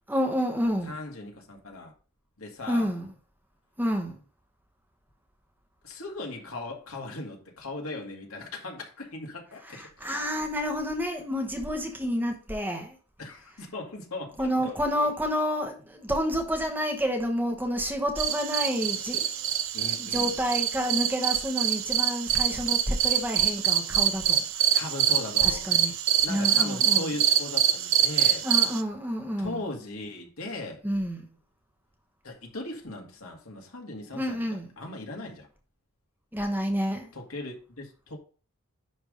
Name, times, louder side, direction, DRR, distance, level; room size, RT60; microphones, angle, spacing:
voice 1, 0.1-1.0 2.7-3.1 3.8-4.2 9.6-13.0 14.4-19.4 19.9-24.7 25.4-26.0 26.3-27.1 28.4-29.6 30.8-31.3 34.1-34.7 36.3-37.1, equal, 10° right, 1.1 m, -29 dB
voice 2, 0.9-1.9 2.4-2.9 5.8-10.3 13.2-15.1 19.7-20.3 24.7-25.7 26.2-28.5 29.4-30.8 32.2-34.4 34.8-35.5 37.1-38.2, left 2 dB, 75° left, 2.2 m, -38 dB
sound 1, 18.2-28.8, right 10 dB, 60° right, 0.8 m, -25 dB
10.5 x 3.6 x 5.1 m
head